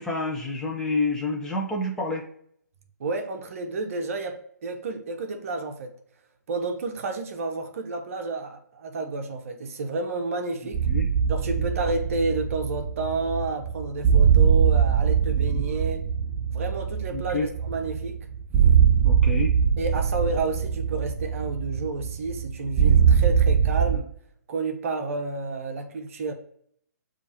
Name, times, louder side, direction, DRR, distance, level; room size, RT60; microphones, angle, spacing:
voice 1, 0.0-2.3 10.9-11.1 11.6-11.7 15.3-15.6 17.1-17.5 19.0-19.5, left 2 dB, 5° left, 0.6 m, -29 dB
voice 2, 3.0-5.9 6.5-10.8 11.3-16.0 16.5-18.2 19.8-24.1 24.5-26.3, right 3 dB, 50° right, 0.8 m, -30 dB
sound 1, 10.7-24.0, right 7 dB, 15° right, 0.9 m, -22 dB
7.1 x 2.5 x 2.8 m
figure-of-eight pair, 130°, 9 cm